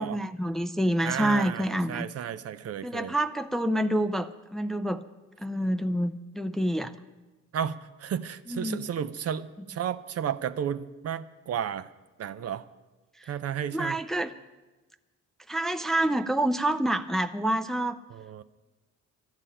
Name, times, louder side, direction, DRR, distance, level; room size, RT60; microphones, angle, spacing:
voice 1, 0.0-2.1 2.8-5.0 5.4-6.9 8.5-8.8 13.2-13.3 13.7-14.3 15.5-18.0, right 1 dB, ahead, 9 dB, 0.5 m, -27 dB
voice 2, 1.0-3.1 7.5-11.9 12.2-12.6 13.3-14.0 18.1-18.4, right 9 dB, 55° right, 13 dB, 0.6 m, -33 dB
12.5 x 7.4 x 9.9 m, 1.2 s
cardioid pair, 90°, 30 cm